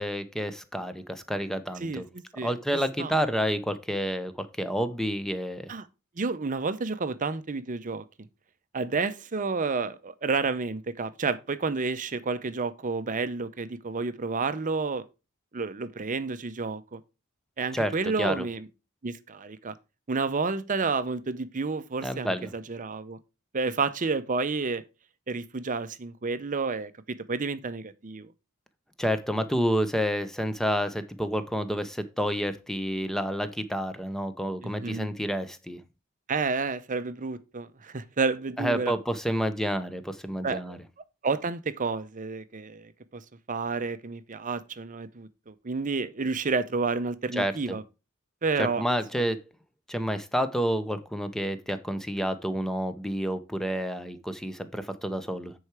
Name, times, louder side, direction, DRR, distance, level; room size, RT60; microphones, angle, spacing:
voice 1, 0.0-2.0 2.4-5.7 17.7-17.9 18.2-18.5 22.0-22.5 29.0-35.8 38.6-40.8 47.3-47.8 48.6-49.4 49.9-55.5, equal, ahead, 0.7 m, -29 dB
voice 2, 1.8-2.5 3.0-3.1 5.7-5.9 6.2-8.0 8.7-15.0 15.5-17.0 17.6-18.7 19.0-19.7 20.1-23.2 23.5-24.8 25.3-28.3 34.6-35.1 36.3-38.9 40.4-40.8 41.2-43.2 43.5-47.8 48.4-48.8 49.1-49.2, right 4 dB, 35° right, 0.6 m, -30 dB
9.6 x 4.7 x 4.7 m
head